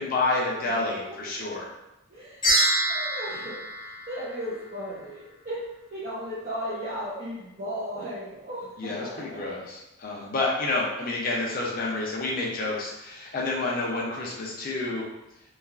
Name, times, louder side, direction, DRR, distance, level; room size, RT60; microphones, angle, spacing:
voice 1, 0.0-1.7 8.8-15.0, left 2 dB, 40° left, -3 dB, 0.4 m, -29 dB
voice 2, 2.1-2.6 2.9-3.6 4.1-5.6 5.9-9.4, equal, 40° right, -10 dB, 0.6 m, -36 dB
sound 1, 2.4-4.9, right 1 dB, 20° left, 1.2 m, -26 dB
3.1 x 2.3 x 2.3 m, 0.92 s
head